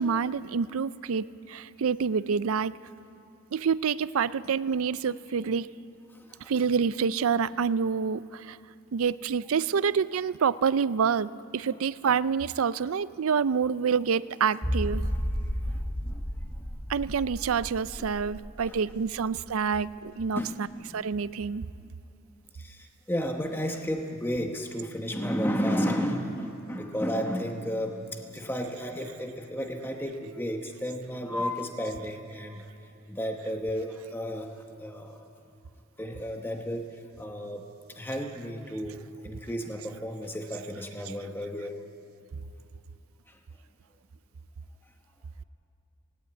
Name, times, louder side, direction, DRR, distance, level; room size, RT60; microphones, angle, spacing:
voice 1, 0.0-2.7 3.5-5.7 6.5-8.6 8.9-15.0 16.9-20.4 20.9-21.7, right 6 dB, 80° right, 17 dB, 0.5 m, -27 dB
sound 1, 14.6-20.1 20.4-20.5 21.0-21.1, equal, 40° left, 5.8 m, -33 dB
voice 2, 15.7-16.2 18.6-18.8 20.3-21.0 22.6-32.6 33.1-34.5 34.8-35.2 36.0-36.9 37.2-37.6 38.0-41.8, equal, 10° left, 3 dB, 1.0 m, -33 dB
18.0 x 18.0 x 9.0 m, 2.6 s
head